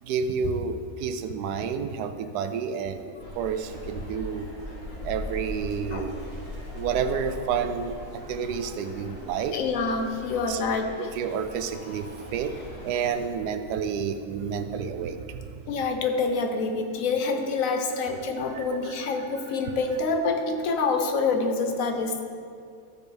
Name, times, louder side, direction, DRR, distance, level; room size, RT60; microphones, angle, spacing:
voice 1, 0.0-4.5 5.0-6.2 6.7-9.6 10.5-10.6 11.0-15.5 18.5-18.6 19.4-19.5, right 6 dB, 85° right, 9 dB, 1.2 m, -30 dB
sound 1, 3.2-13.2, left 1 dB, 85° left, 2.3 m, -40 dB
voice 2, 9.5-11.1 15.7-22.2, left 4 dB, 65° left, 5 dB, 1.1 m, -27 dB
14.0 x 6.5 x 3.3 m, 2.4 s
omnidirectional pair, 1.7 m